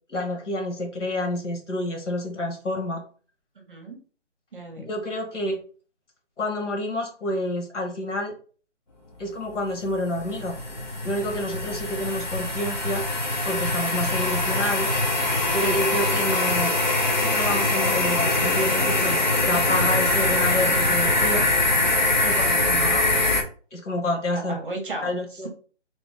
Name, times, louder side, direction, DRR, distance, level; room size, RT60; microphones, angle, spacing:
voice 1, 0.1-3.0 4.9-5.6 6.4-8.3 9.2-10.6 11.0-13.0 13.4-15.0 15.5-16.7 17.2-21.5 22.2-23.3 23.7-24.6 25.0-25.5, left 1 dB, 85° left, 3 dB, 1.2 m, -28 dB
voice 2, 3.7-4.0 4.5-4.9 22.6-23.0 24.3-25.1, right 2 dB, 45° right, 3 dB, 0.9 m, -34 dB
sound 1, 9.6-23.4, left 2 dB, 40° left, 0.6 m, -23 dB
3.0 x 2.1 x 3.2 m, 0.40 s
hypercardioid pair, 175°, 35 cm